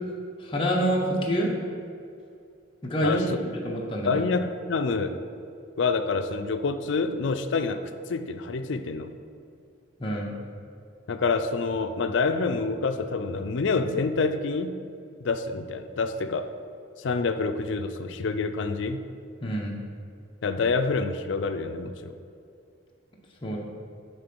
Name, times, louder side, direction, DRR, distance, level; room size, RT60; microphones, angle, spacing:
voice 1, 0.4-1.5 2.8-3.2 3.6-4.2 10.0-10.3 19.4-19.8 23.4-23.6, equal, 25° left, -3 dB, 0.8 m, -26 dB
voice 2, 3.0-3.4 4.1-5.1 5.8-7.8 8.1-9.1 11.1-14.7 15.2-16.5 17.0-19.0 20.4-22.1, left 4 dB, 65° left, 9 dB, 0.4 m, -27 dB
8.8 x 3.7 x 6.0 m, 2.5 s
head